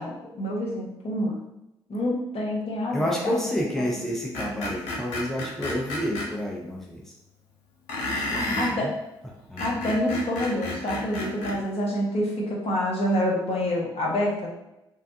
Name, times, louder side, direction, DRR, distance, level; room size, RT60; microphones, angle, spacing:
voice 1, 0.0-1.4 1.9-3.3 8.3-8.9 9.6-14.5, left 1 dB, 50° left, -2 dB, 1.0 m, -27 dB
voice 2, 2.9-7.1 8.1-8.9 9.5-9.8, equal, 5° left, -2 dB, 0.7 m, -30 dB
Screech, 4.3-6.3 7.9-8.8 9.4-11.6, left 1 dB, 75° left, 0.7 m, -31 dB
3.3 x 2.3 x 2.7 m, 0.88 s
hypercardioid pair, 40°, 13 cm